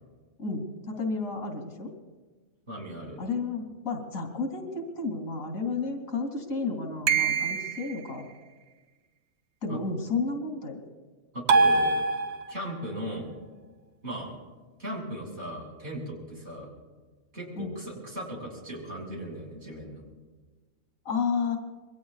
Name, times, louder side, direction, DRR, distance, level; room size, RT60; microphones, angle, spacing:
voice 1, 0.4-1.9 3.2-8.3 9.6-10.8 17.6-17.7 21.0-21.6, left 4 dB, 80° left, 3 dB, 3.1 m, -31 dB
voice 2, 2.7-3.2 9.7-9.8 11.3-12.0 12.5-13.3 14.0-14.3 14.8-16.7 17.3-20.0, right 1 dB, 55° right, -3 dB, 6.1 m, -37 dB
sound 1, 7.1-8.0 11.5-12.7, right 4 dB, 90° right, 1.3 m, -24 dB
27.0 x 22.5 x 2.4 m, 1.3 s
omnidirectional pair, 1.4 m